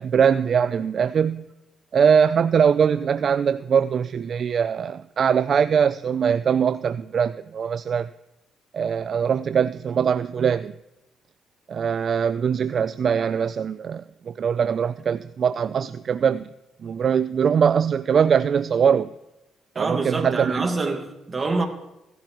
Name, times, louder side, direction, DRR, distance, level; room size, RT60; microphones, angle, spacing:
voice 1, 0.0-1.5 1.9-8.1 8.7-10.7 11.7-16.5 16.8-19.1 19.8-20.7, right 7 dB, 55° right, 0.3 m, -22 dB
voice 2, 19.7-21.7, right 3 dB, 30° right, 1.6 m, -26 dB
16.0 x 11.5 x 2.9 m
cardioid pair, 90°, 0 cm